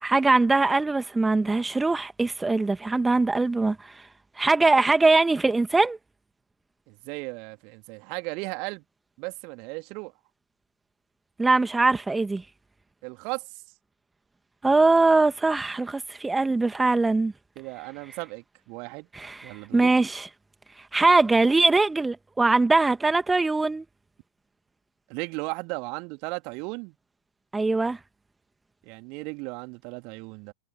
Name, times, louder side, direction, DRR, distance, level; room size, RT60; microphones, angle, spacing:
voice 1, 0.0-4.0 4.4-6.0 11.4-12.4 14.6-17.3 19.1-20.3 20.9-23.8 27.5-28.0, right 3 dB, 10° right, 2.0 m, -22 dB
voice 2, 6.9-8.8 9.2-10.1 13.0-13.6 17.6-19.1 19.4-19.9 25.1-26.9 28.8-30.5, right 30 dB, 45° right, 2.8 m, -36 dB
figure-of-eight pair, 90°, 0 cm